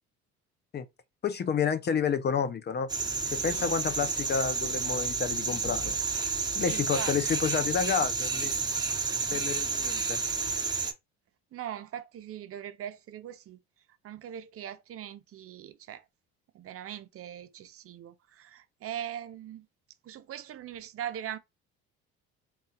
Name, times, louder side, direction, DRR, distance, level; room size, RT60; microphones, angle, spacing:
voice 1, 1.2-2.9 3.3-5.9 6.5-8.6 9.3-10.2, left 6 dB, 35° left, 0.6 m, -30 dB
sound 1, 2.9-10.9, right 4 dB, 15° right, 1.1 m, -30 dB
voice 2, 3.4-3.8 6.5-7.2 11.5-13.6 14.0-16.0 16.5-19.7 20.0-21.4, right 10 dB, 45° right, 0.7 m, -41 dB
3.8 x 2.3 x 4.1 m
cardioid pair, 100°, 31 cm